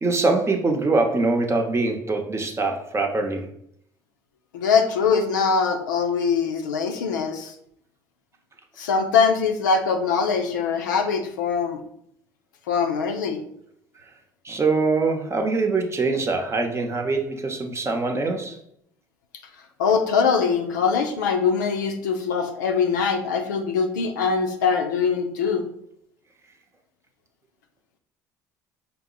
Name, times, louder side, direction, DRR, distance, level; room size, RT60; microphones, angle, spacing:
voice 1, 0.0-3.5 14.4-18.6, right 3 dB, 30° right, 3 dB, 0.8 m, -23 dB
voice 2, 4.5-7.5 8.8-11.8 12.7-13.4 19.8-25.7, left 5 dB, 85° left, 5 dB, 0.4 m, -22 dB
5.2 x 2.0 x 3.8 m, 0.70 s
hypercardioid pair, 60°, 10 cm